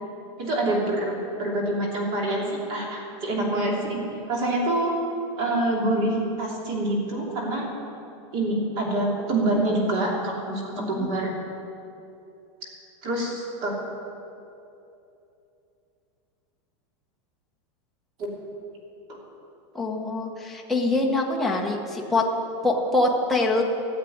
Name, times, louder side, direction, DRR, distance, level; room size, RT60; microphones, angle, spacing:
voice 1, 0.4-4.0 4.3-4.9 5.4-7.6 8.3-11.3 13.0-13.7 18.2-18.3 19.1-19.2, right 1 dB, 35° right, -2 dB, 3.0 m, -26 dB
voice 2, 10.7-11.1 19.7-22.2 22.6-23.6, left 2 dB, ahead, -2 dB, 1.0 m, -24 dB
15.0 x 7.5 x 9.2 m, 2.8 s
supercardioid pair, 175°, 16 cm